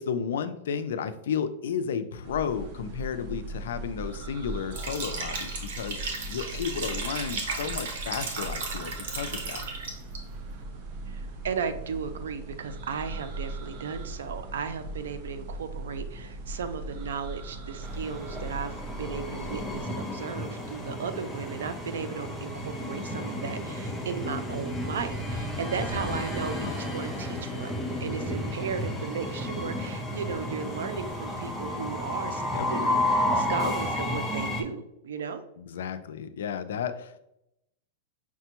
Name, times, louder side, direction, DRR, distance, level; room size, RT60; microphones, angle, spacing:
voice 1, 0.0-9.6 26.6-26.9 32.5-32.7 33.5-33.7 35.6-37.2, left 7 dB, 80° left, 10 dB, 0.4 m, -33 dB
sound 1, 2.2-19.8, right 2 dB, 45° right, 0.6 m, -39 dB
Liquid, 4.7-10.2, right 4 dB, 65° right, 0.9 m, -35 dB
voice 2, 11.1-32.4 32.7-35.4, right 6 dB, 90° right, 10 dB, 0.4 m, -35 dB
Train, 17.8-34.6, left 1 dB, ahead, 0.6 m, -32 dB
5.8 x 2.2 x 2.9 m, 0.82 s
supercardioid pair, 145°, 0 cm